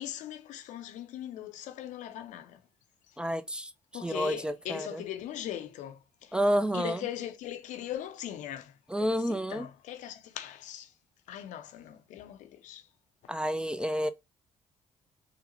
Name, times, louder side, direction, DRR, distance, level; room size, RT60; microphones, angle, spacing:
voice 1, 0.0-2.6 3.9-6.4 6.7-10.9 11.3-12.8, left 11 dB, 75° left, 0.5 m, -40 dB
voice 2, 3.2-3.7 4.0-5.0 6.3-7.0 8.9-9.7 13.3-14.1, equal, 5° right, 0.4 m, -29 dB
3.8 x 2.1 x 2.8 m
supercardioid pair, 60°, 13 cm